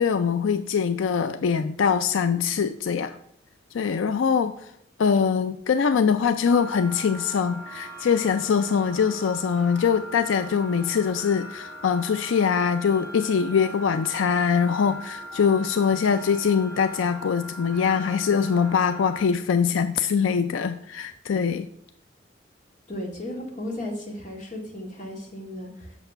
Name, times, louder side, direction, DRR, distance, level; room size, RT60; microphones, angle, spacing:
voice 1, 0.0-3.2 3.7-4.7 5.0-21.7, left 6 dB, 90° left, 10 dB, 0.4 m, -23 dB
sound 1, 6.5-19.3, equal, 15° right, 1.7 m, -40 dB
voice 2, 22.9-26.0, left 1 dB, 40° left, 0 dB, 2.1 m, -35 dB
8.1 x 6.9 x 5.6 m, 0.74 s
head